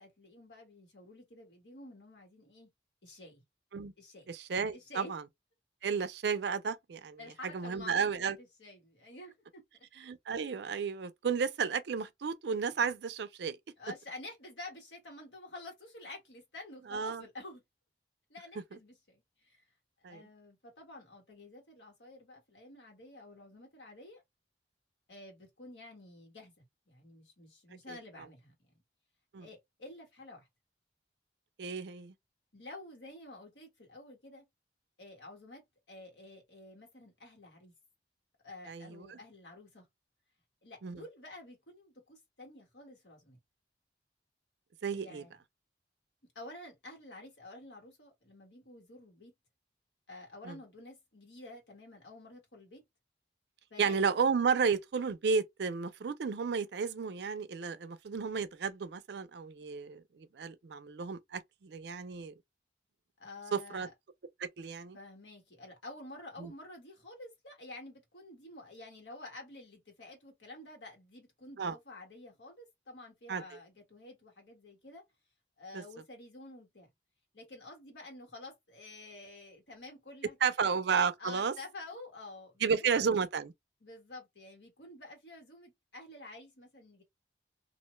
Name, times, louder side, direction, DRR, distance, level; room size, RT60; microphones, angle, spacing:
voice 1, 0.0-2.7 3.0-3.4 4.0-4.3 4.7-5.1 7.2-9.9 13.8-17.6 18.3-19.6 20.1-24.2 25.1-28.8 29.4-30.5 32.5-34.4 35.0-35.6 35.9-37.7 38.4-39.9 40.6-43.4 44.9-45.3 46.3-49.3 50.1-52.8 53.7-54.0 63.2-63.9 64.9-75.0 75.6-76.9 77.3-80.4 80.6-80.7 81.2-82.9 83.8-87.0, left 2 dB, 80° left, 1.4 m, -50 dB
voice 2, 4.3-5.2 5.8-8.4 10.0-13.6 16.9-17.2 20.0-20.2 27.9-28.0 29.3-29.5 31.6-32.1 38.7-39.2 40.8-41.0 44.8-45.2 50.4-50.6 53.8-62.3 63.5-63.9 64.4-65.0 66.4-66.5 71.6-71.8 73.3-73.4 75.7-75.8 80.4-81.5 82.6-83.5, right 5 dB, 70° right, 0.4 m, -33 dB
2.6 x 2.1 x 3.0 m
head